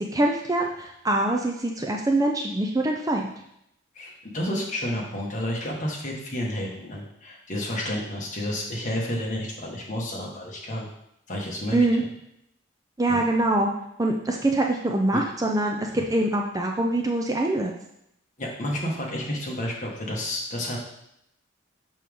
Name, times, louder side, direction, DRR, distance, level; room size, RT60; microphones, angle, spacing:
voice 1, 0.1-3.3 11.7-12.0 13.0-13.7 14.0-17.7, right 2 dB, 15° right, 1 dB, 0.5 m, -24 dB
voice 2, 3.9-10.9 11.3-12.1 13.1-13.2 15.1-15.2 15.8-16.0 18.4-20.8, left 1 dB, 40° left, -2 dB, 1.5 m, -31 dB
6.1 x 5.9 x 3.5 m, 0.77 s
head